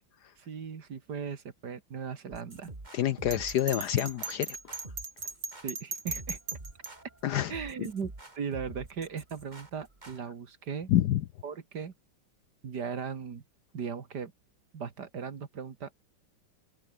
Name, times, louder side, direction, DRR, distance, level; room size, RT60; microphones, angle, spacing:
voice 1, 0.4-2.7 5.6-6.4 7.5-10.9 11.4-11.9 12.6-13.4 13.7-14.3 14.7-15.9, right 6 dB, 55° right, 2.4 m, -38 dB
sound 1, 2.3-10.2, right 2 dB, 20° right, 3.1 m, -47 dB
voice 2, 2.9-4.6 7.2-7.5 10.9-11.2, left 12 dB, 65° left, 1.1 m, -27 dB
Bell, 3.3-6.9, right 4 dB, 75° right, 4.9 m, -37 dB
open air
omnidirectional pair, 2.1 m